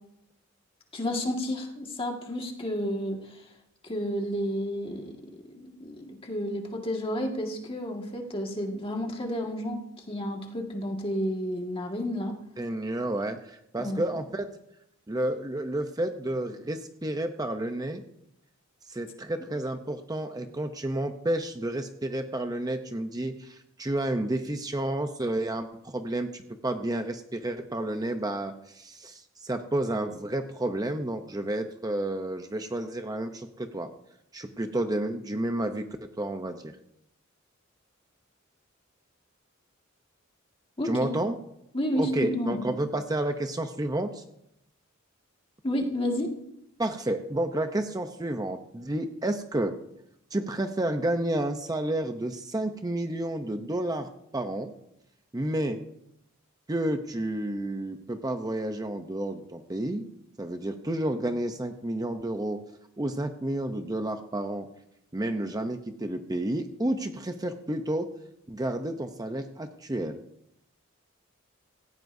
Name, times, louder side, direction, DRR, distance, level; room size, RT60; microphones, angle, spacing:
voice 1, 0.9-3.4 3.8-9.8 10.1-12.4 13.8-14.0 40.8-41.1 41.7-42.6 45.6-46.3, equal, 30° left, 1 dB, 1.9 m, -31 dB
voice 2, 12.6-14.5 15.1-18.0 18.9-33.9 34.3-36.7 40.8-41.4 42.0-44.2 46.8-49.8 50.3-54.7 55.3-55.8 56.7-60.1 60.4-62.6 63.0-64.7 65.1-68.1 68.5-70.2, right 1 dB, 20° right, 6 dB, 0.7 m, -30 dB
17.0 x 16.0 x 2.7 m, 0.80 s
head